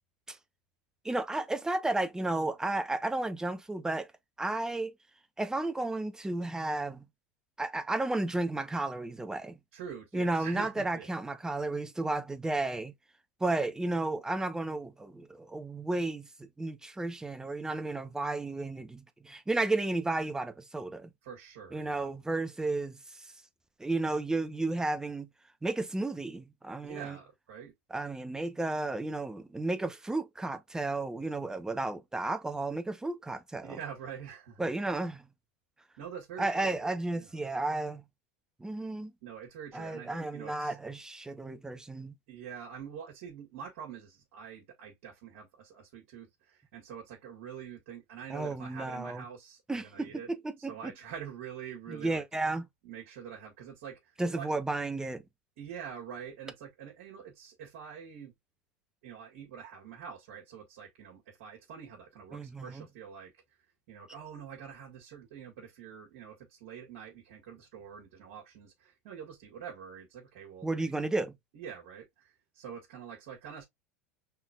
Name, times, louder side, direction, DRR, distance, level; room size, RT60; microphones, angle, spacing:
voice 1, 1.0-4.1 4.4-4.9 5.4-7.0 7.6-9.6 10.1-12.9 13.4-21.1 21.7-23.3 23.8-25.3 25.6-27.2 27.9-33.8 34.6-35.3 36.4-38.0 38.6-39.1 39.7-42.1 48.3-49.2 49.7-50.9 51.9-52.7 54.2-55.2 62.3-62.9 70.6-71.4, right 2 dB, 10° right, 0.9 m, -33 dB
voice 2, 9.7-11.1 21.2-22.1 26.8-27.7 33.6-34.7 36.0-36.8 37.1-37.3 39.2-40.8 42.3-50.3 50.6-52.2 52.8-54.5 55.6-58.3 59.0-63.4 63.9-70.9 71.5-73.6, right 8 dB, 65° right, 1.9 m, -45 dB
5.7 x 3.7 x 2.4 m
hypercardioid pair, 85°, 7 cm